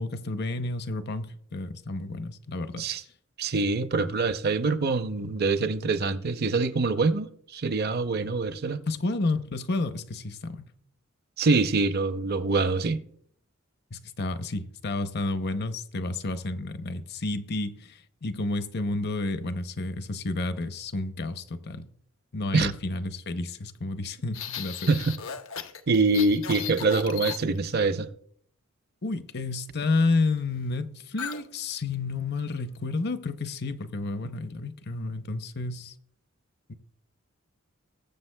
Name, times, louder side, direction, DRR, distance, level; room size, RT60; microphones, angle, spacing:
voice 1, 0.0-2.8 8.9-10.7 13.9-21.9 22.3-24.8 29.0-35.9 36.7-36.8, left 2 dB, 55° left, 0.7 m, -30 dB
voice 2, 3.4-8.8 11.4-13.0 22.5-22.7 24.9-25.2 25.9-28.1, right 3 dB, 50° right, 0.6 m, -25 dB
sound 1, 24.3-27.8 31.2-31.5 31.7-31.9 32.4-32.8, left 8 dB, 75° left, 0.9 m, -36 dB
20.0 x 7.6 x 2.2 m
head